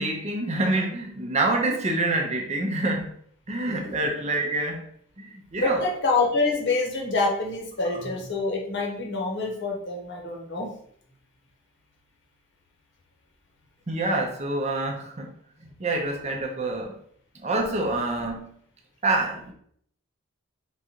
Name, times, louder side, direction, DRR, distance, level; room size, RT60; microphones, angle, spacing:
voice 1, 0.0-3.1 3.5-4.8 5.2-5.8 13.9-15.3 15.6-17.0 17.3-18.5 19.0-19.5, right 2 dB, 30° right, 1 dB, 0.6 m, -27 dB
voice 2, 5.6-10.7, left 3 dB, 55° left, -1 dB, 1.0 m, -26 dB
3.9 x 2.5 x 4.3 m, 0.63 s
head